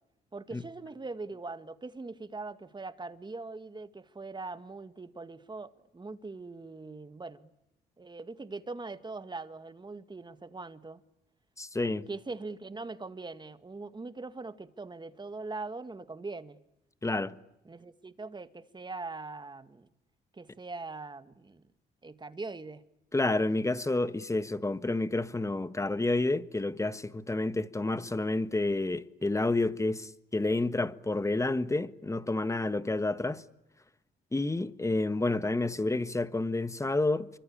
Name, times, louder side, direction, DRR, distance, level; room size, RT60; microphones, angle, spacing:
voice 1, 0.3-7.5 8.0-11.0 12.1-16.6 17.7-19.9 20.3-21.6 22.0-22.8, right 3 dB, 20° right, 2.0 m, -41 dB
voice 2, 11.6-12.0 17.0-17.3 23.1-33.4 34.3-37.3, left 2 dB, 15° left, 1.4 m, -29 dB
27.0 x 24.5 x 8.8 m
cardioid pair, 90°, 20 cm